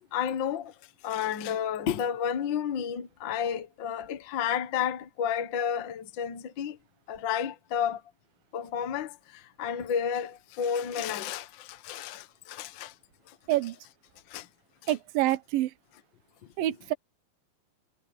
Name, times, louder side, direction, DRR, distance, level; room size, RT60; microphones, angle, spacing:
voice 1, 0.1-0.7 1.0-6.8 7.1-8.0 8.5-12.9 13.3-13.4 14.3-14.5 14.8-14.9 16.6-16.7, left 8 dB, 75° left, 1.0 m, -31 dB
voice 2, 14.9-15.7 16.6-16.9, right 15 dB, 75° right, 2.7 m, -27 dB
omnidirectional pair, 4.2 m